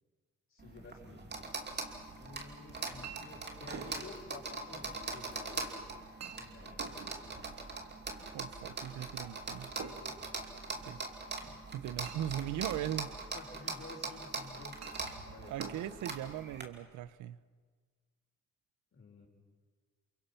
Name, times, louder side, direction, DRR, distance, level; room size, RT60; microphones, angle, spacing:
voice 1, 0.5-1.5 2.1-5.8 6.3-7.1 10.3-10.5 13.3-14.8 15.3-16.0 18.9-19.3, left 3 dB, 45° left, 0 dB, 6.1 m, -52 dB
sound 1, 0.6-16.6, right 3 dB, 35° right, 2.7 m, -42 dB
Chink clink, 1.6-17.1, right 6 dB, 60° right, 2.2 m, -52 dB
voice 2, 8.3-9.7 10.8-11.0 11.7-13.1 15.5-17.4, right 12 dB, 80° right, 17 dB, 0.7 m, -39 dB
29.0 x 23.5 x 5.7 m, 1.5 s
cardioid pair, 90°, 30 cm